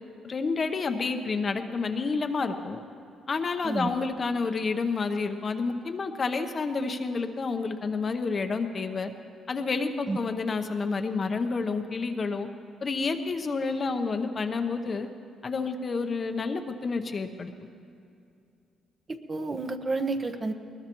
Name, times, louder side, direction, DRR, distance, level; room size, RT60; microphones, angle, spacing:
voice 1, 0.2-2.8 3.3-9.1 9.5-12.5 12.8-15.1 15.4-17.5, left 4 dB, 40° left, 6 dB, 0.9 m, -29 dB
voice 2, 19.1-20.5, right 3 dB, 35° right, 6 dB, 1.1 m, -30 dB
20.5 x 20.5 x 3.1 m, 2.5 s
cardioid pair, 90°, 0 cm